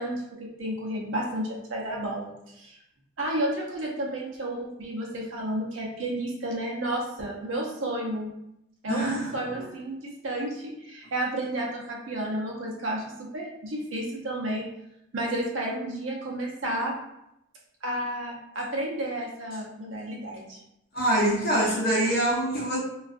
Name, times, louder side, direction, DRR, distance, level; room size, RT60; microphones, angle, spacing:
voice 1, 0.0-2.8 3.2-8.3 8.8-14.7 15.1-17.0 17.8-20.6, right 1 dB, 70° right, -1 dB, 0.6 m, -31 dB
voice 2, 8.9-9.3 20.9-22.8, right 1 dB, 45° left, -5 dB, 0.8 m, -24 dB
2.3 x 2.3 x 2.5 m, 0.82 s
head